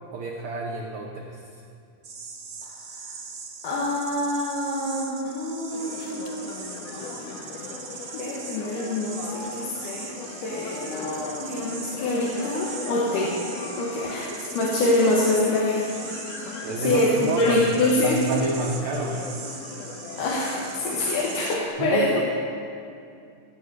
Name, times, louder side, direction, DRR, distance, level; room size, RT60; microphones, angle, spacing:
voice 1, 0.1-1.6 16.6-19.2 21.8-22.2, right 3 dB, 85° right, 1 dB, 1.1 m, -29 dB
sound 1, 2.0-21.6, right 4 dB, 45° right, 1.5 m, -40 dB
voice 2, 3.6-6.5 8.2-13.4 13.8-15.9 16.5-18.2 20.2-22.2, left 2 dB, 85° left, -3 dB, 2.8 m, -25 dB
sound 2, 5.7-21.7, left 4 dB, 65° left, 1.9 m, -39 dB
17.0 x 6.1 x 8.1 m, 2.5 s
omnidirectional pair, 3.6 m